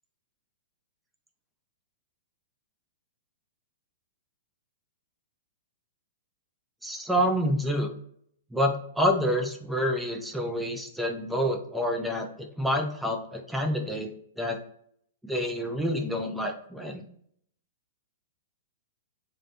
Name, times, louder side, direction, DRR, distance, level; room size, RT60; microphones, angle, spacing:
voice 1, 6.8-7.9 8.5-12.3 12.6-14.1 14.4-14.6 15.3-17.0, equal, ahead, 2 dB, 0.4 m, -27 dB
2.4 x 2.2 x 2.7 m, 0.67 s
figure-of-eight pair, 105°, 0 cm